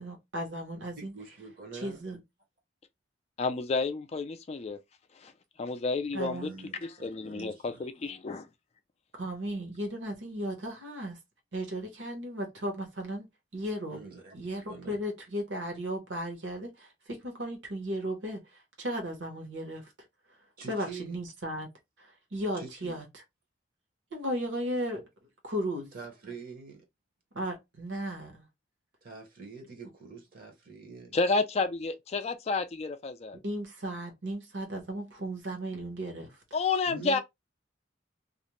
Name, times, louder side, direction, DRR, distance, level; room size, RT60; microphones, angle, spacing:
voice 1, 0.0-1.1 1.7-2.2 6.1-6.6 9.1-11.2 11.5-13.3 13.5-14.0 14.3-19.9 20.7-21.7 22.0-23.0 24.1-25.0 25.4-25.9 27.3-28.4 33.4-36.3, equal, 70° right, 1.0 m, -35 dB
voice 2, 1.0-2.0 6.3-7.9 13.9-14.4 14.7-15.0 20.6-21.2 22.5-23.0 25.9-26.8 29.0-31.2 36.9-37.2, right 4 dB, 50° right, 0.8 m, -45 dB
voice 3, 3.4-4.8 5.2-5.3 5.6-6.5 6.8-8.5 31.1-33.4 36.5-37.2, left 4 dB, 35° left, 0.3 m, -30 dB
2.4 x 2.1 x 2.9 m
head